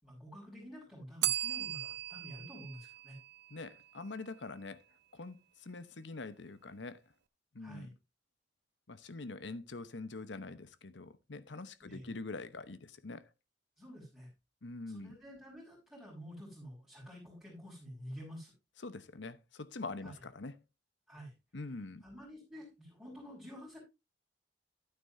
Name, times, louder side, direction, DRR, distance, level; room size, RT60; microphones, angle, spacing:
voice 1, 0.0-3.2 7.6-7.9 11.8-12.1 13.8-14.3 14.9-18.5 20.0-20.1 21.1-21.3 22.0-23.8, equal, 5° right, 5.4 m, -49 dB
Bell, 1.2-4.0, right 12 dB, 65° right, 0.5 m, -38 dB
voice 2, 3.5-4.8 5.1-7.0 7.5-7.9 8.9-13.3 14.6-15.2 18.8-20.6 21.5-22.0, left 3 dB, 70° left, 1.0 m, -44 dB
12.0 x 9.4 x 2.7 m
head